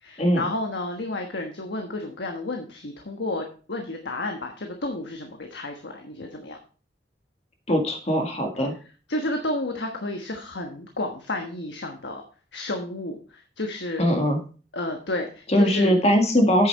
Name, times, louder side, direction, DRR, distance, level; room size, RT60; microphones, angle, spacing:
voice 1, 0.0-6.6 9.1-12.2 12.5-14.0 14.7-16.1, left 2 dB, 75° left, 3 dB, 1.3 m, -31 dB
voice 2, 7.7-8.7 14.0-14.4 15.5-16.7, equal, 40° left, 4 dB, 1.7 m, -20 dB
9.0 x 6.8 x 4.5 m, 0.38 s
head